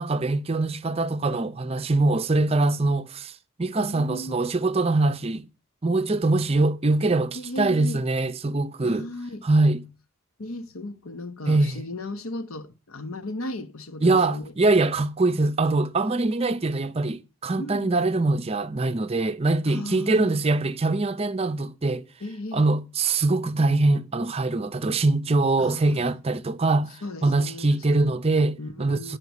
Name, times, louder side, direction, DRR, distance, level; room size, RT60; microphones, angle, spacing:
voice 1, 0.0-5.5 5.8-9.1 9.4-9.8 11.5-11.8 14.0-22.0 22.5-29.2, right 2 dB, 25° right, 0.5 m, -23 dB
voice 2, 3.8-4.5 7.3-8.0 8.8-9.5 10.4-14.5 17.6-18.0 19.7-20.7 22.2-22.6 25.6-26.0 27.0-27.8 28.1-28.2 28.6-29.2, left 1 dB, 75° left, 1.1 m, -36 dB
9.6 x 5.8 x 8.3 m
head